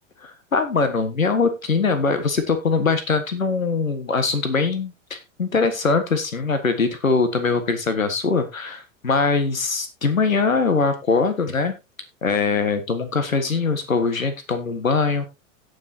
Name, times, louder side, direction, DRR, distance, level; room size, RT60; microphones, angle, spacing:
voice 1, 0.2-11.7 12.2-15.2, left 4 dB, 85° left, 10 dB, 1.6 m, -22 dB
17.0 x 6.4 x 2.8 m, 0.23 s
figure-of-eight pair, 90°, 39 cm